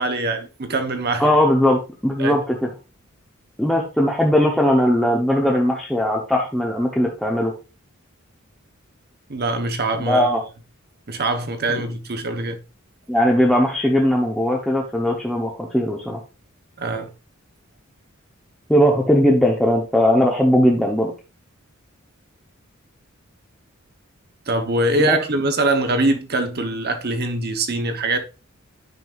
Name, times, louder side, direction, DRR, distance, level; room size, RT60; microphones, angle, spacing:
voice 1, 0.0-1.2 2.2-2.4 9.3-10.3 11.1-12.6 16.8-17.1 24.5-28.2, right 2 dB, 50° right, 1.0 m, -23 dB
voice 2, 1.2-2.7 3.6-7.5 10.0-10.4 13.1-16.2 18.7-21.1 25.0-25.2, equal, 5° left, 0.9 m, -19 dB
9.4 x 5.4 x 2.5 m
head